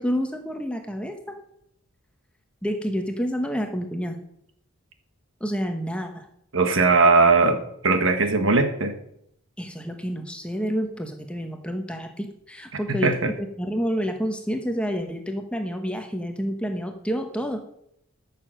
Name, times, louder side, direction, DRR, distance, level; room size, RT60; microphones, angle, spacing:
voice 1, 0.0-1.4 2.6-4.2 5.4-6.3 9.6-17.6, equal, 5° left, 5 dB, 1.0 m, -29 dB
voice 2, 6.5-9.0 12.9-13.3, right 3 dB, 65° right, 8 dB, 1.3 m, -19 dB
13.5 x 6.8 x 6.4 m, 0.73 s
head